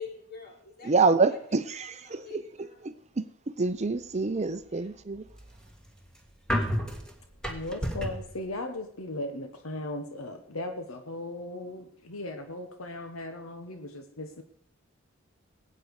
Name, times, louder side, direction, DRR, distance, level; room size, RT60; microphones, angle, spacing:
voice 1, 0.0-0.9 1.3-2.8 4.7-4.9, left 5 dB, 45° left, 3.7 m, -45 dB
voice 2, 0.8-2.4 2.8-3.2 3.6-5.2, right 4 dB, 30° right, 0.6 m, -26 dB
sound 1, 5.1-8.3, equal, 5° left, 1.6 m, -32 dB
voice 3, 7.5-14.4, left 2 dB, 75° left, 1.2 m, -37 dB
20.5 x 8.6 x 4.8 m
head